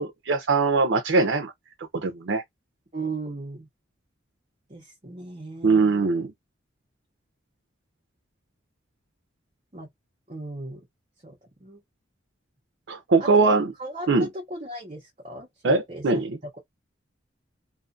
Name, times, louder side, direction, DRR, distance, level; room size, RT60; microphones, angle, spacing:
voice 1, 0.0-1.5 1.9-2.4 5.6-6.3 12.9-13.7 14.1-14.3 15.6-16.4, right 3 dB, 75° right, 0.5 m, -21 dB
voice 2, 2.9-3.7 4.7-6.1 9.7-9.9 10.3-10.8 11.2-11.8 13.2-13.5 13.8-16.2, right 2 dB, 35° right, 0.7 m, -37 dB
2.7 x 2.4 x 2.5 m
head